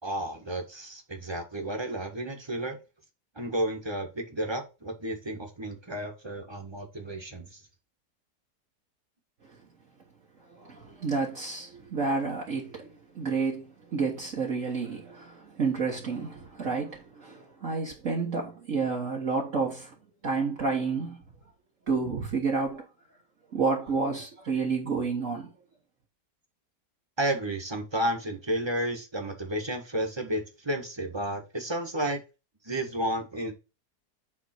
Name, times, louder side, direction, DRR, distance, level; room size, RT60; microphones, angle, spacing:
voice 1, 0.0-2.8 3.3-7.6 27.2-32.2 32.6-33.5, right 1 dB, 15° right, 1.4 m, -32 dB
voice 2, 10.5-19.9 20.2-21.2 21.9-22.9 23.5-25.5, right 4 dB, 50° right, 1.5 m, -30 dB
8.3 x 3.6 x 4.4 m
omnidirectional pair, 1.8 m